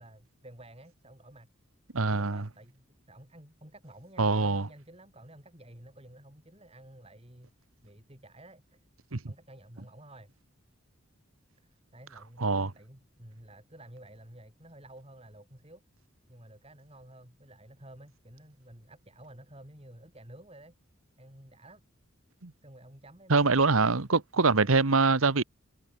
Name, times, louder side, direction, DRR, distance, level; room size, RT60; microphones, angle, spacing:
voice 1, 0.0-1.5 2.0-8.8 9.3-10.3 11.6-15.8 16.3-20.7 21.2-21.8 22.6-24.1 24.4-24.7, right 1 dB, 30° right, 5.3 m, -52 dB
voice 2, 1.9-2.4 4.2-4.7 9.1-9.2 12.4-12.7 22.4-22.5 23.3-25.4, right 4 dB, 80° right, 1.2 m, -24 dB
head